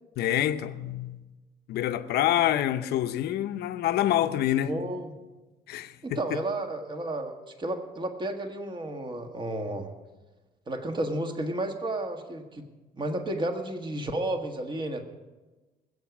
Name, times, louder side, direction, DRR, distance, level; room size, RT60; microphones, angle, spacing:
voice 1, 0.2-1.2 1.7-4.7 5.7-6.4, left 12 dB, 70° left, 0.8 m, -27 dB
voice 2, 4.6-5.1 6.0-9.9 10.7-12.6 12.9-15.0, right 1 dB, 30° right, 1.7 m, -32 dB
20.5 x 8.2 x 6.1 m
cardioid pair, 110°, 17 cm